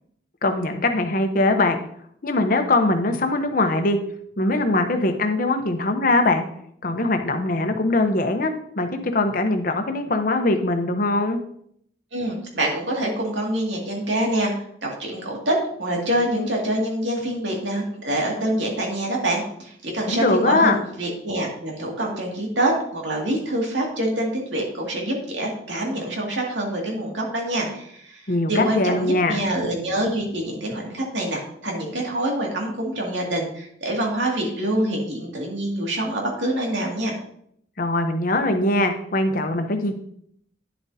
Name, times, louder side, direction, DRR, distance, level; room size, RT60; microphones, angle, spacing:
voice 1, 0.4-1.8 2.2-4.0 4.4-6.4 6.8-11.4 20.1-20.8 28.3-29.4 37.8-39.9, left 2 dB, 45° left, 6 dB, 0.9 m, -21 dB
voice 2, 12.1-14.5 14.8-37.2, right 1 dB, 75° right, -1 dB, 2.3 m, -25 dB
10.5 x 7.3 x 2.8 m, 0.68 s
head